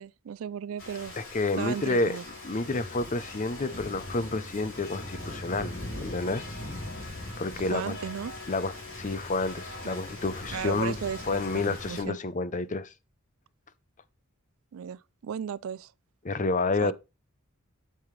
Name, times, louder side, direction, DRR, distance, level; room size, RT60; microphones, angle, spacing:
voice 1, 0.0-1.1 1.6-2.2 7.7-8.3 9.8-10.0 10.5-12.2 14.7-15.9 16.8-16.9, right 8 dB, 65° right, 0.3 m, -35 dB
Rain, 0.8-12.0, left 1 dB, 60° left, 5.0 m, -40 dB
voice 2, 1.2-2.2 2.4-6.5 7.4-8.0 8.5-11.0 11.3-12.9 16.2-16.9, left 3 dB, 35° left, 0.6 m, -29 dB
8.5 x 7.7 x 3.2 m
head